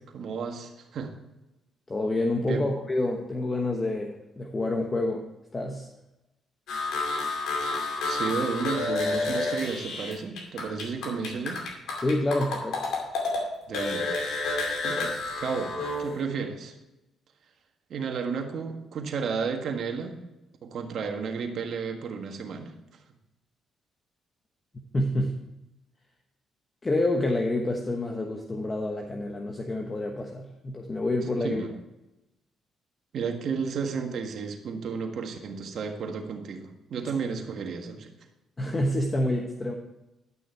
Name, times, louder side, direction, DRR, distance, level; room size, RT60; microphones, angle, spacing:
voice 1, 0.1-1.1 2.4-2.7 8.0-11.6 13.7-14.1 14.6-16.7 17.9-20.2 20.6-22.7 31.4-31.7 33.1-38.1, right 5 dB, 65° right, 4 dB, 1.5 m, -32 dB
voice 2, 1.9-5.3 5.5-5.9 12.0-12.9 24.9-25.4 26.8-31.7 37.3-37.4 38.6-39.7, left 1 dB, 30° left, 2 dB, 1.1 m, -28 dB
sound 1, 6.7-13.4 13.7-16.2, left 3 dB, 80° left, 2.4 m, -30 dB
11.0 x 6.3 x 4.6 m, 0.97 s
cardioid pair, 90°, 0 cm